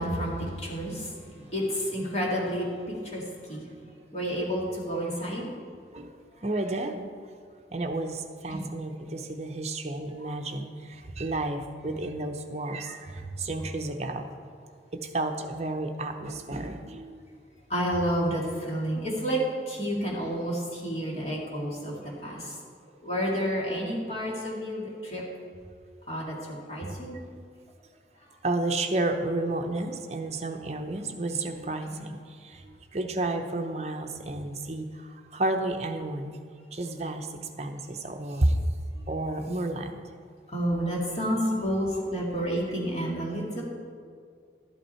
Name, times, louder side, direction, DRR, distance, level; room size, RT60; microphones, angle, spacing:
voice 1, 0.0-3.6 4.1-5.6 8.5-8.7 10.2-10.4 13.1-13.2 17.7-22.6 23.0-25.2 26.1-27.1 28.2-28.3 31.8-32.0 40.5-43.6, equal, 35° left, -4 dB, 2.3 m, -30 dB
voice 2, 6.4-7.1 7.7-14.3 14.9-17.3 21.0-21.2 28.4-36.4 36.7-37.3 37.6-38.6 39.1-40.1, right 2 dB, 40° right, 5 dB, 0.7 m, -31 dB
12.5 x 8.4 x 4.4 m, 2.1 s
head